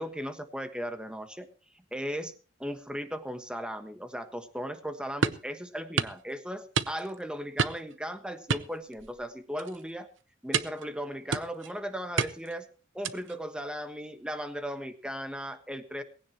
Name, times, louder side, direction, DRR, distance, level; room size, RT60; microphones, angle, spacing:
voice 1, 0.0-1.5 1.9-2.3 2.6-10.1 10.4-12.7 12.9-16.0, equal, 5° right, 9 dB, 1.4 m, -37 dB
sound 1, 5.2-5.5 6.0-6.2 6.8-7.2 7.6-7.9 8.5-9.3 9.6-9.8 10.5-10.9 11.3-11.7 12.2-12.6 13.0-13.4, right 5 dB, 75° right, 0.7 m, -30 dB
19.0 x 16.5 x 2.9 m, 0.35 s
head